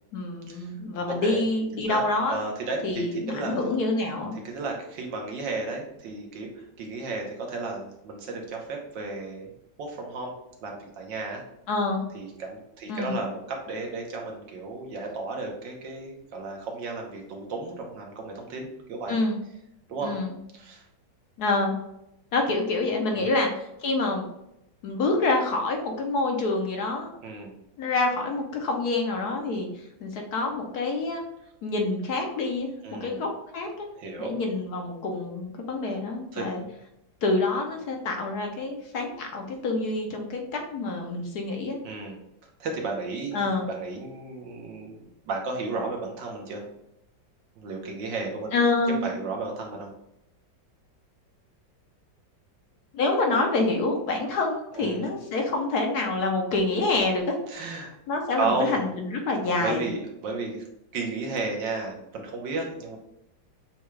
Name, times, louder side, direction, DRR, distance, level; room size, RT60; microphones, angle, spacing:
voice 1, 0.1-2.4 2.8-4.3 11.7-12.0 12.9-13.2 19.1-19.4 20.0-20.3 21.4-21.8 22.3-24.3 24.8-27.1 27.8-29.7 30.0-31.2 31.6-32.7 33.0-33.9 34.2-36.6 37.2-41.8 43.3-43.7 48.5-49.0 52.9-57.4 58.1-59.8, left 3 dB, 65° left, 2 dB, 1.1 m, -27 dB
voice 2, 2.3-3.7 4.3-9.5 9.8-10.3 10.6-11.4 12.1-19.2 19.9-20.1 20.5-20.8 23.1-23.3 27.2-27.6 32.8-33.2 34.0-34.3 36.3-36.5 41.8-42.2 42.6-46.6 47.6-48.5 49.0-49.9 54.7-55.1 57.5-57.9 58.4-58.9 59.6-60.6 60.9-63.0, right 3 dB, 75° right, 1 dB, 1.6 m, -33 dB
7.0 x 2.4 x 3.1 m, 0.82 s
omnidirectional pair, 2.0 m